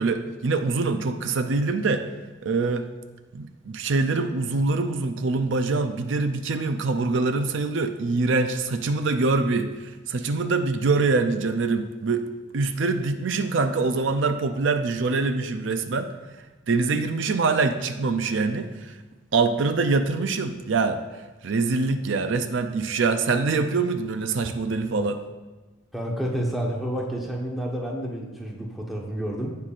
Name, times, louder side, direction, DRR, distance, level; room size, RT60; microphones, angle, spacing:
voice 1, 0.0-2.1 2.4-2.9 3.3-12.3 12.5-16.1 16.7-19.0 19.3-21.0 21.4-25.2, right 3 dB, 70° right, 8 dB, 0.5 m, -24 dB
voice 2, 25.9-29.6, equal, ahead, -2 dB, 1.0 m, -29 dB
15.5 x 5.7 x 2.5 m, 1.2 s
head